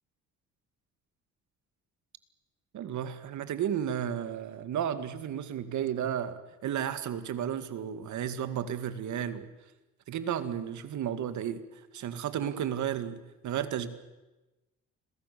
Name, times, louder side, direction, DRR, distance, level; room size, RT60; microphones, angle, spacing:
voice 1, 2.7-9.5 10.1-11.6 11.9-13.9, right 9 dB, 75° right, 11 dB, 2.2 m, -33 dB
29.5 x 22.5 x 6.9 m, 1.1 s
cardioid pair, 90°, 30 cm